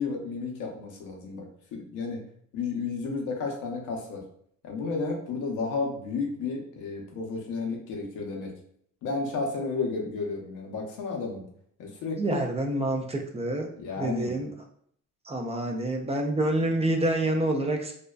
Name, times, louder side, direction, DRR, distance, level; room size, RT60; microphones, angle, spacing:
voice 1, 0.0-2.2 2.5-4.2 4.6-8.5 9.0-11.4 11.8-12.4 13.8-14.3, left 4 dB, 90° left, 1 dB, 0.7 m, -32 dB
voice 2, 12.2-13.7 14.0-14.5 15.2-17.9, right 1 dB, 20° right, 3 dB, 0.4 m, -27 dB
2.5 x 2.2 x 2.2 m, 0.65 s
cardioid pair, 90°, 30 cm